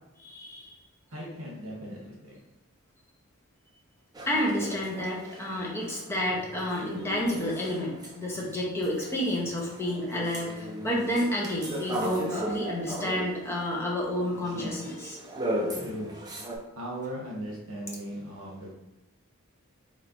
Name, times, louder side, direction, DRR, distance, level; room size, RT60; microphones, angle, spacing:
voice 1, 0.2-0.8 4.3-15.2, left 1 dB, 10° left, -3 dB, 0.7 m, -30 dB
voice 2, 1.1-2.4 15.7-16.1 16.8-18.7, right 1 dB, 65° right, -4 dB, 1.2 m, -38 dB
sound 1, 4.1-8.5 8.8-16.6, right 1 dB, 20° right, 0.4 m, -37 dB
4.3 x 3.1 x 2.6 m, 0.93 s
head